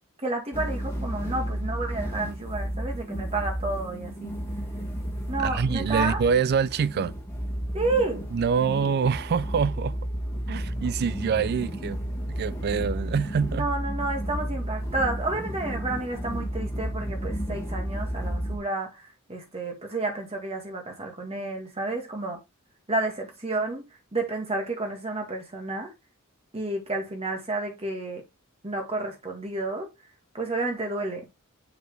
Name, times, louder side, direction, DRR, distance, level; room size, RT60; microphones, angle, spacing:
voice 1, 0.2-4.3 5.3-6.2 7.7-8.3 13.6-19.0 19.3-22.4 22.9-23.8 24.1-25.9 26.5-28.2 28.6-29.9 30.3-31.3, right 2 dB, 30° right, 1.9 m, -30 dB
sound 1, 0.5-18.6, equal, 10° left, 1.9 m, -32 dB
voice 2, 5.4-7.1 8.3-10.0 10.5-12.0 12.3-13.7, right 6 dB, 50° right, 0.3 m, -25 dB
6.8 x 4.3 x 3.2 m
head